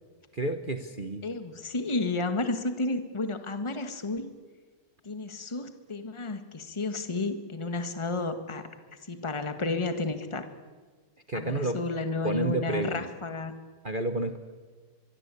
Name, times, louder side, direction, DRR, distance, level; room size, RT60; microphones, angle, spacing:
voice 1, 0.3-1.2 11.3-11.8 12.2-13.1 13.8-14.4, right 2 dB, 35° right, 7 dB, 0.9 m, -30 dB
voice 2, 1.2-4.3 5.0-8.7 9.1-10.5 11.3-13.5, left 3 dB, 15° left, 8 dB, 1.4 m, -32 dB
24.5 x 23.0 x 8.5 m, 1.5 s
omnidirectional pair, 2.4 m